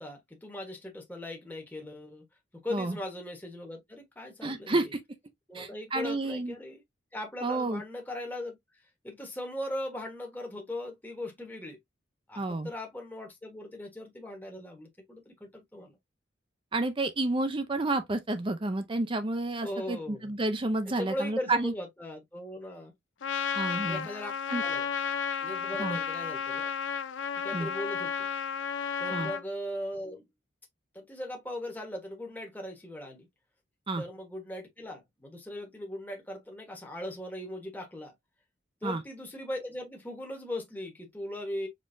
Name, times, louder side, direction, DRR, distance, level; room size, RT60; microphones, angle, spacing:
voice 1, 0.0-2.3 2.6-4.9 5.5-6.8 7.1-8.6 9.0-11.8 12.3-16.0 19.6-20.3 20.9-22.9 23.8-24.3 24.6-24.9 25.4-26.7 27.3-28.3 29.0-30.2 30.9-33.3 34.0-38.1 38.8-41.7, left 1 dB, 10° left, 1.2 m, -39 dB
voice 2, 4.4-5.0 5.5-6.5 7.4-7.8 12.4-12.7 16.7-21.7 23.5-24.1 24.5-24.6 25.8-26.0 27.5-27.7 29.1-29.3 33.9-34.0 38.8-39.0, right 2 dB, 25° right, 0.6 m, -30 dB
Trumpet, 23.2-29.4, left 7 dB, 75° left, 0.5 m, -32 dB
5.1 x 3.3 x 2.6 m
head